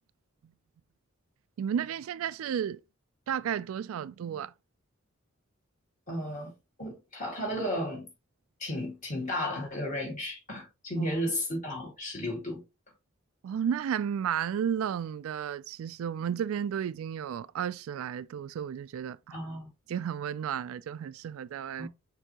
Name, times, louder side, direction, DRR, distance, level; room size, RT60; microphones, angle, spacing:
voice 1, 1.6-2.8 3.3-4.5 11.0-11.1 13.4-19.4 19.9-21.9, right 8 dB, 80° right, 0.3 m, -33 dB
voice 2, 6.1-8.1 8.6-12.6 19.3-19.7 21.8-21.9, left 1 dB, 35° left, 2.0 m, -34 dB
6.6 x 2.7 x 2.9 m
head